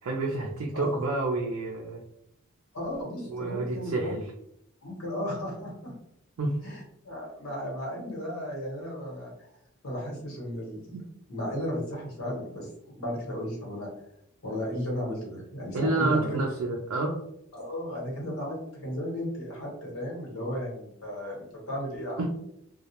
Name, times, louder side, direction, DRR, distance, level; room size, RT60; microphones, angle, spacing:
voice 1, 0.0-2.0 3.2-4.3 6.4-6.6 15.7-17.2 22.2-22.3, right 2 dB, 80° right, -1 dB, 0.4 m, -29 dB
voice 2, 2.7-4.1 4.8-5.9 6.6-9.3 9.8-10.9 11.3-12.7 13.0-13.9 14.4-16.4 17.5-22.2, equal, 90° left, -2 dB, 1.1 m, -34 dB
2.2 x 2.0 x 2.8 m, 0.76 s
head